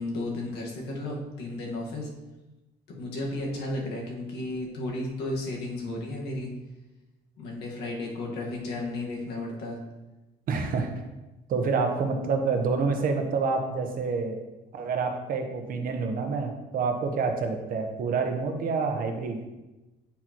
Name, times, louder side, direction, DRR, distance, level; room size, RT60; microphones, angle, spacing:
voice 1, 0.0-2.1 3.0-6.5 7.4-9.8, left 2 dB, 80° left, -1 dB, 1.6 m, -33 dB
voice 2, 10.5-10.9 11.5-14.4 14.7-19.4, right 4 dB, 55° right, 4 dB, 1.0 m, -27 dB
8.5 x 4.4 x 3.0 m, 1.1 s
cardioid pair, 110°, 17 cm